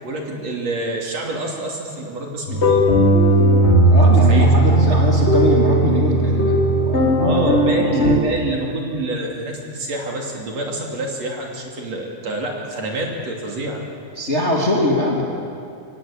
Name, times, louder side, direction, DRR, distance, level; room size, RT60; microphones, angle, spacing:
voice 1, 0.0-2.9 4.3-4.5 7.2-13.8, right 2 dB, 45° right, 0 dB, 3.6 m, -27 dB
sound 1, 2.5-8.2, right 1 dB, 40° left, 0.9 m, -16 dB
voice 2, 3.8-8.1 14.2-15.2, left 1 dB, 20° left, -2 dB, 2.3 m, -22 dB
24.5 x 17.5 x 8.8 m, 2.6 s
omnidirectional pair, 4.3 m